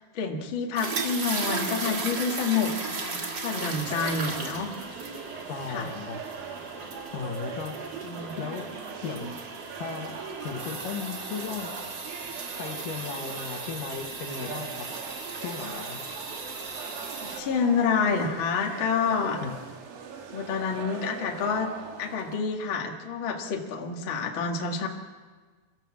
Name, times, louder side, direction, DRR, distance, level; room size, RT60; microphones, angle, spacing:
voice 1, 0.1-4.7 5.7-5.9 8.0-8.3 17.2-19.4 20.3-21.7 22.0-24.9, left 5 dB, 45° left, 1 dB, 1.9 m, -28 dB
sound 1, 0.7-17.4, right 3 dB, 40° right, 1.9 m, -36 dB
sound 2, 3.8-22.4, right 6 dB, 65° right, 3.4 m, -41 dB
voice 2, 5.5-6.2 7.1-7.8 8.4-8.7 9.0-9.3 9.8-10.2 10.4-11.8 12.6-14.9 15.4-16.0 19.4-19.5, left 6 dB, 65° left, 3 dB, 3.0 m, -36 dB
29.0 x 14.0 x 7.6 m, 1.4 s
omnidirectional pair, 4.6 m